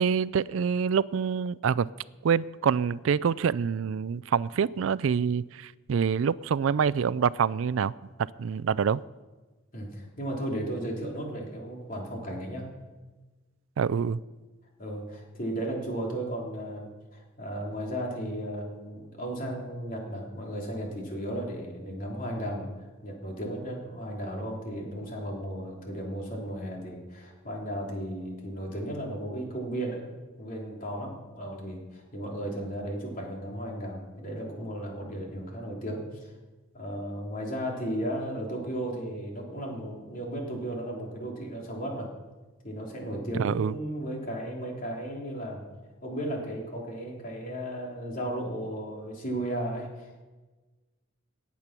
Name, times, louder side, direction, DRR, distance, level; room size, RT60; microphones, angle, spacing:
voice 1, 0.0-1.9 2.2-7.9 8.4-9.0 13.8-14.2 43.3-43.7, right 6 dB, 70° right, 20 dB, 0.4 m, -26 dB
voice 2, 9.7-12.7 14.8-22.7 23.0-30.1 30.4-36.3 36.7-42.1 42.6-45.6 46.0-50.2, right 1 dB, 40° left, -1 dB, 3.3 m, -35 dB
18.5 x 8.3 x 6.0 m, 1.2 s
head